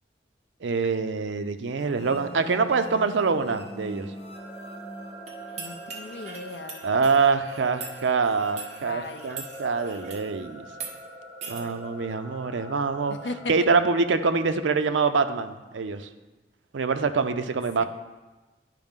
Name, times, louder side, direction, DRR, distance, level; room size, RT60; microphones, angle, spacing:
voice 1, 0.6-4.1 6.8-10.6 11.5-13.2 13.5-16.1 16.7-17.8, right 4 dB, 80° right, 9 dB, 0.5 m, -25 dB
sound 1, 1.8-9.2, left 1 dB, 30° left, 1.0 m, -44 dB
sound 2, 4.3-13.5, right 1 dB, 5° right, 1.2 m, -44 dB
sound 3, 5.3-10.3 10.7-10.9 11.4-11.6, right 5 dB, 35° right, 0.9 m, -41 dB
voice 2, 5.6-6.9 8.8-9.4 11.6-11.9 13.1-13.5 17.8-17.9, left 3 dB, 65° left, 7 dB, 0.6 m, -37 dB
11.0 x 4.8 x 3.7 m, 1.2 s
head